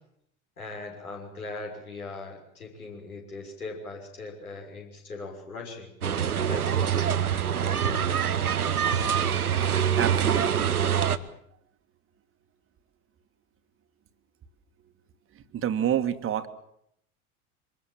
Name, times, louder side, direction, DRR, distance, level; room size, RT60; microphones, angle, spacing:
voice 1, 0.6-5.9 6.5-6.9, left 3 dB, 80° left, 1 dB, 6.2 m, -40 dB
sound 1, 6.0-11.2, right 8 dB, 80° right, 1.2 m, -25 dB
voice 2, 9.9-11.0 15.5-16.5, right 10 dB, 30° right, 9 dB, 1.8 m, -28 dB
24.5 x 21.5 x 7.5 m, 0.73 s
figure-of-eight pair, 75°, 43 cm